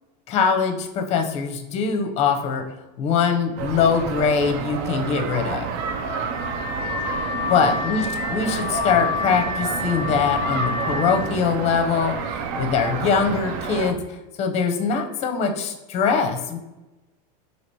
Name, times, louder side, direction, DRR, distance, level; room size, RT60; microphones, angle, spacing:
voice 1, 0.3-2.6 3.0-5.7 7.4-16.6, left 6 dB, 35° left, 5 dB, 0.6 m, -22 dB
sound 1, 3.6-13.9, right 5 dB, 55° right, 0.5 m, -29 dB
Car / Alarm, 5.8-11.3, left 4 dB, 35° right, 1.3 m, -29 dB
2.9 x 2.8 x 4.4 m, 1.0 s
supercardioid pair, 145°, 20 cm